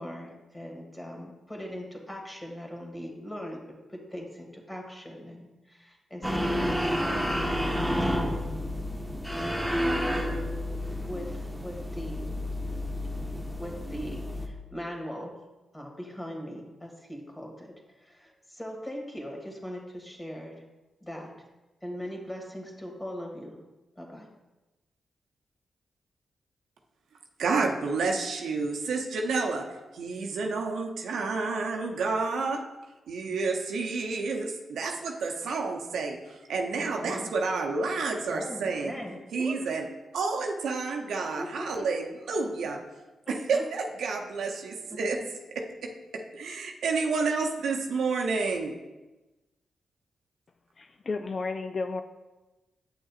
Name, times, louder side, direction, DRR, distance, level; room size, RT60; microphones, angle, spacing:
voice 1, 0.0-3.6 3.9-8.4 9.8-10.4 11.1-12.3 13.6-15.3 15.7-20.6 21.0-21.3 21.8-23.6 24.0-24.3 36.7-37.3 38.2-39.6 41.4-41.9 43.3-43.6 44.9-45.0, equal, 20° left, 0 dB, 1.9 m, -40 dB
sound 1, 6.2-14.5, equal, ahead, 1.0 m, -30 dB
voice 2, 27.4-29.7 29.9-32.6 33.1-38.9 39.3-39.9 40.1-42.8 43.3-45.2 45.5-48.7, right 4 dB, 75° right, 2 dB, 0.7 m, -30 dB
voice 3, 50.8-52.0, left 4 dB, 50° left, 7 dB, 0.3 m, -32 dB
8.0 x 6.2 x 2.5 m, 1.1 s
supercardioid pair, 40°, 0 cm